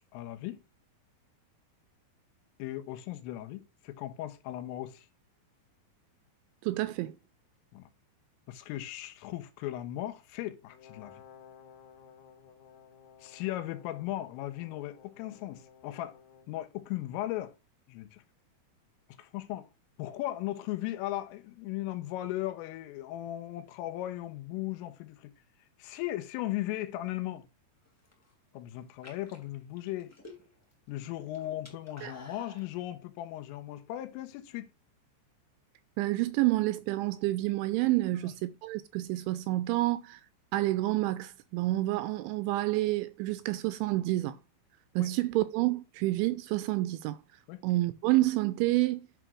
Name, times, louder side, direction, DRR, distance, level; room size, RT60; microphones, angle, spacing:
voice 1, 0.1-0.6 2.6-5.1 7.7-7.9 8.5-11.2 13.2-16.2 16.5-17.6 17.9-18.2 19.2-19.7 20.0-25.3 25.8-27.4 28.5-30.1 30.9-34.7 38.2-38.3 45.0-45.1 47.5-47.6, left 15 dB, 85° left, 3.6 m, -37 dB
voice 2, 6.6-7.2 32.0-32.1 36.0-40.2 40.5-44.4 45.0-47.2 47.6-49.1, right 18 dB, 85° right, 2.7 m, -29 dB
Brass instrument, 10.7-16.5, left 7 dB, 65° left, 2.4 m, -56 dB
sound 1, 27.8-28.3 28.9-30.7 31.0-32.7, left 2 dB, 15° left, 0.6 m, -51 dB
10.5 x 3.6 x 6.2 m
omnidirectional pair, 5.7 m